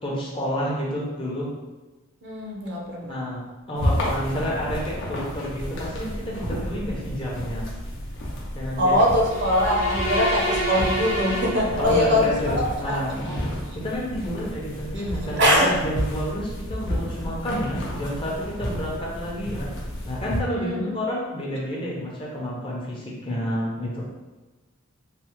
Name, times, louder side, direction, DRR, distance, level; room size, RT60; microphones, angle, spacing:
voice 1, 0.0-1.5 3.0-3.4 3.7-7.7 8.5-9.0 11.8-13.1 13.7-19.7 20.0-24.0, equal, 25° left, -4 dB, 0.6 m, -29 dB
voice 2, 2.2-3.3 8.8-13.4 15.4-15.8 20.5-20.9, left 1 dB, 55° right, -2 dB, 0.6 m, -22 dB
sound 1, 3.7-20.4, equal, 60° left, 0.7 m, -31 dB
sound 2, 9.2-12.3, right 1 dB, 85° left, 0.9 m, -28 dB
3.2 x 2.1 x 2.9 m, 1.2 s
head